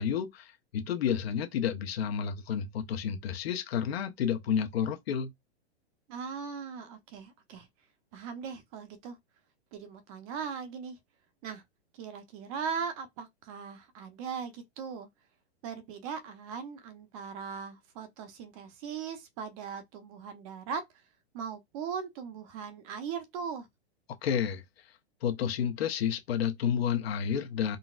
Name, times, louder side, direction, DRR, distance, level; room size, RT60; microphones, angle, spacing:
voice 1, 0.0-5.3 24.2-24.6 25.2-27.8, left 8 dB, 65° left, 0.8 m, -30 dB
voice 2, 6.1-7.7 8.1-9.2 9.7-11.0 11.4-11.6 11.9-15.1 15.6-20.8 21.3-23.7, right 6 dB, 35° right, 0.6 m, -39 dB
3.9 x 2.0 x 2.4 m
hypercardioid pair, 145°, 34 cm